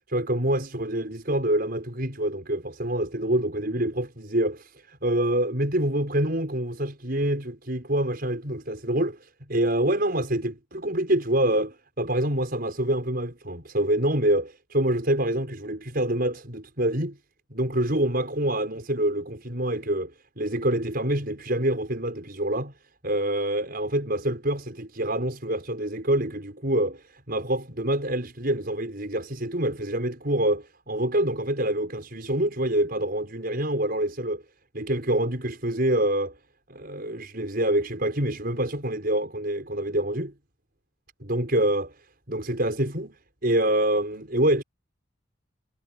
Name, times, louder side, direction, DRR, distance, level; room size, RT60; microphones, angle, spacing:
voice 1, 0.1-9.2 9.5-17.2 17.5-22.7 23.0-34.4 34.7-36.3 36.7-40.3 41.2-41.9 42.3-43.2 43.4-44.6, right 1 dB, 50° right, 6.5 m, -26 dB
head